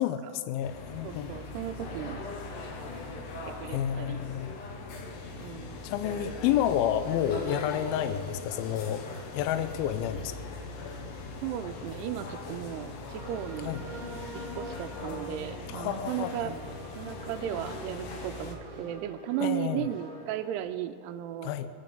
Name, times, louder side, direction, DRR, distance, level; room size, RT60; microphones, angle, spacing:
voice 1, 0.0-1.3 3.7-4.5 5.8-9.0 9.3-10.4 13.6-13.8 15.7-16.5 19.4-19.9 21.4-21.7, left 10 dB, 85° left, 10 dB, 2.1 m, -30 dB
sound 1, 0.6-18.6, left 3 dB, 65° left, 2.2 m, -40 dB
voice 2, 1.0-2.2 3.6-4.2 5.4-5.8 11.4-13.7 14.5-16.5 17.0-21.5, right 12 dB, 80° right, 8 dB, 2.4 m, -35 dB
sound 2, 13.1-20.6, right 2 dB, 45° right, 2.8 m, -45 dB
23.5 x 9.1 x 5.3 m, 2.4 s
omnidirectional pair, 5.1 m